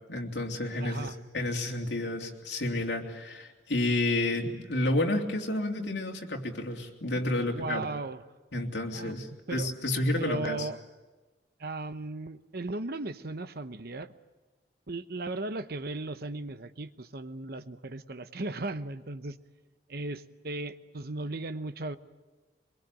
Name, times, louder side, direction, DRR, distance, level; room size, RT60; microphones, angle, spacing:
voice 1, 0.1-1.1 1.3-7.9 8.5-10.7, left 1 dB, 75° left, 1 dB, 3.3 m, -30 dB
voice 2, 0.8-1.2 7.4-8.2 8.9-9.7 10.2-10.8 11.6-14.1 14.9-19.4 19.9-22.0, right 2 dB, 60° right, 11 dB, 1.0 m, -36 dB
24.0 x 22.5 x 9.2 m, 1.2 s
head